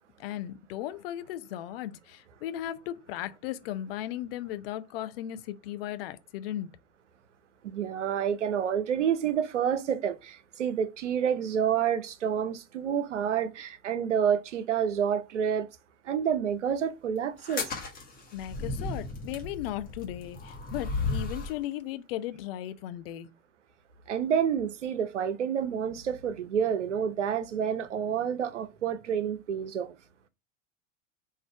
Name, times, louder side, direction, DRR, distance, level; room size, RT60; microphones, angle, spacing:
voice 1, 0.2-6.7 18.3-23.3, left 12 dB, 50° left, 0.6 m, -36 dB
voice 2, 7.6-15.7 16.0-17.7 24.1-30.0, right 8 dB, 75° right, 0.6 m, -29 dB
sound 1, 17.4-21.6, left 3 dB, 25° left, 1.3 m, -34 dB
4.0 x 2.6 x 4.6 m
figure-of-eight pair, 80°, 37 cm